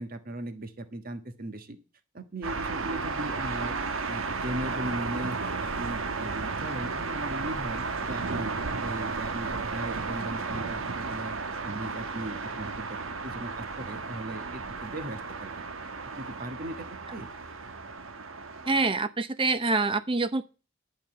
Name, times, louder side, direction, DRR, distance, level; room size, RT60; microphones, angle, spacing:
voice 1, 0.0-1.8 2.1-3.7 4.1-8.5 8.8-11.4 11.6-15.9 16.2-17.3, right 1 dB, 40° right, 1.4 m, -38 dB
sound 1, 2.4-18.9, right 4 dB, 70° right, 1.2 m, -34 dB
voice 2, 18.7-20.4, right 3 dB, 25° right, 0.7 m, -26 dB
11.5 x 5.3 x 7.6 m
head